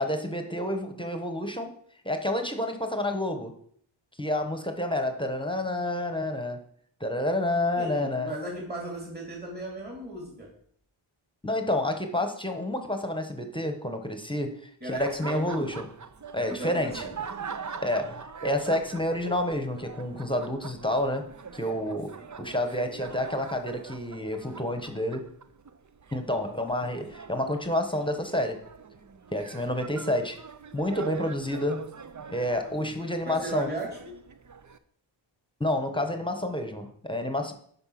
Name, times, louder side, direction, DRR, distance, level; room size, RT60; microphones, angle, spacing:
voice 1, 0.0-1.8 2.0-3.5 4.2-6.6 7.0-8.3 11.4-15.9 16.3-17.0 17.8-21.3 21.5-22.1 22.4-25.3 26.1-28.6 29.3-30.4 30.7-31.8 32.3-33.7 35.6-37.5, left 1 dB, 10° left, 6 dB, 1.1 m, -29 dB
voice 2, 7.8-10.5 14.8-15.8 16.4-17.1 22.2-22.3 33.3-34.1, right 1 dB, 20° right, -1 dB, 2.4 m, -36 dB
Laughter, 14.9-34.8, right 6 dB, 40° right, 0.7 m, -42 dB
8.8 x 5.7 x 5.9 m, 0.62 s
wide cardioid pair, 85°, 48 cm